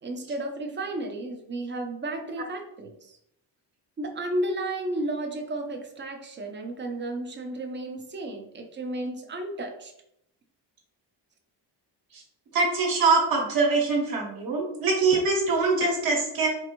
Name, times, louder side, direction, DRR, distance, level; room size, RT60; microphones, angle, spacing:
voice 1, 0.0-3.2 4.0-9.9, right 1 dB, 25° right, 4 dB, 0.5 m, -33 dB
voice 2, 12.5-16.5, right 3 dB, 55° right, -1 dB, 0.9 m, -23 dB
4.4 x 2.5 x 2.9 m, 0.76 s
cardioid pair, 150°, 43 cm